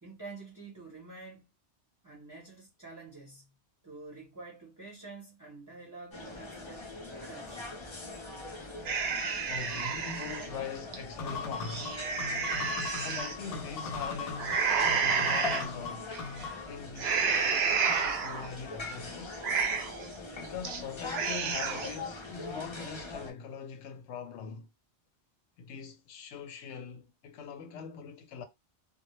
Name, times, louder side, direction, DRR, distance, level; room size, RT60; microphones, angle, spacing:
voice 1, 0.0-1.5 2.0-3.5 3.8-6.9 7.2-7.8, right 3 dB, 20° right, 0.7 m, -48 dB
sound 1, 6.1-23.3, left 2 dB, 35° left, 0.5 m, -42 dB
sound 2, 8.9-10.5 10.9-11.0 11.5-13.3 14.4-15.7 16.1-16.5 17.0-18.5 18.9-19.0 19.3-20.1 20.4-20.8 21.1-22.0, right 5 dB, 70° right, 0.8 m, -30 dB
voice 2, 9.5-12.1 13.0-16.2 16.7-17.3 17.9-19.5 20.4-24.7 25.6-28.4, left 6 dB, 90° left, 0.9 m, -42 dB
sound 3, 11.2-16.7, left 5 dB, 60° left, 0.7 m, -39 dB
2.2 x 2.0 x 3.0 m
omnidirectional pair, 1.1 m